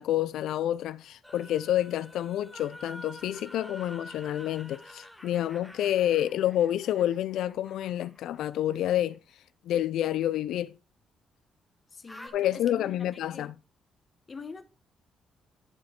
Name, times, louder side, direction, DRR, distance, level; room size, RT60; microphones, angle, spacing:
voice 1, 0.0-10.8 12.3-13.5, left 12 dB, 75° left, 0.4 m, -29 dB
Male screaming close to the mic, 1.2-9.2 12.1-12.3, left 1 dB, 5° left, 1.8 m, -49 dB
voice 2, 11.9-13.0 13.3-13.5 14.3-14.6, left 4 dB, 25° left, 1.4 m, -44 dB
11.5 x 7.4 x 4.4 m
cardioid pair, 170°, 0 cm